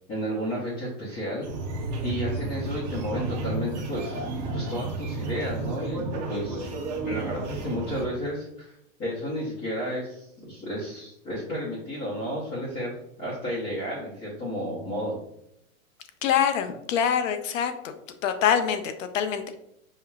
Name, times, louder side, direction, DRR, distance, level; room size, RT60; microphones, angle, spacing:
voice 1, 0.1-1.5 2.0-6.7 7.0-8.7 9.0-15.2, equal, 20° left, -8 dB, 0.8 m, -32 dB
sound 1, 1.4-8.1, right 2 dB, 35° right, 0.4 m, -32 dB
voice 2, 16.2-17.9 18.2-19.5, left 8 dB, 65° left, 8 dB, 0.6 m, -25 dB
5.5 x 2.2 x 2.3 m, 0.77 s
supercardioid pair, 155°, 42 cm